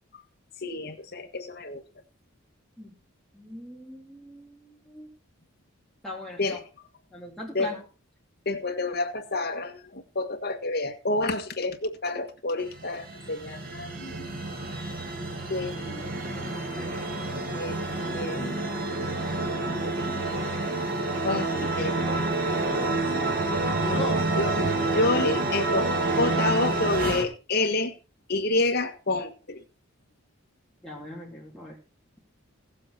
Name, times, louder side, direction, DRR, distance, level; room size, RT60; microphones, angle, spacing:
voice 1, 0.6-1.8 6.4-6.7 7.5-7.8 8.4-14.3 15.5-16.0 16.4-16.5 17.5-17.8 18.1-18.6 21.2-23.3 23.8-24.6 24.9-27.9 28.3-29.6, left 2 dB, 50° left, 1.6 m, -29 dB
voice 2, 3.3-5.1 6.0-6.6 7.1-7.8 24.0-24.4 30.8-31.8, left 1 dB, ahead, 3.3 m, -40 dB
sound 1, 12.6-27.2, right 2 dB, 45° right, 2.1 m, -28 dB
16.5 x 7.6 x 4.3 m
head